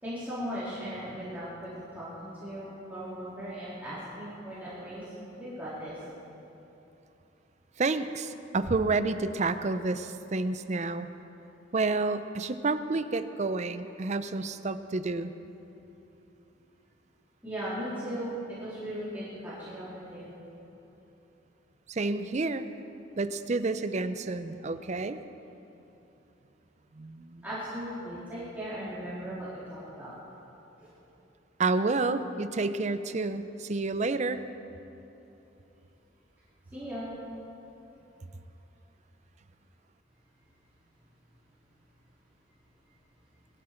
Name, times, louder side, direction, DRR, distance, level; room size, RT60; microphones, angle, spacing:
voice 1, 0.0-5.0 5.4-6.0 17.4-20.3 27.4-30.1 30.8-30.9 36.7-37.1, equal, 10° right, -12 dB, 3.3 m, -38 dB
voice 2, 7.8-11.1 11.7-15.3 21.9-22.7 23.2-25.2 27.0-27.4 31.6-34.4, right 3 dB, 35° right, 11 dB, 0.5 m, -29 dB
20.5 x 12.5 x 4.5 m, 3.0 s
head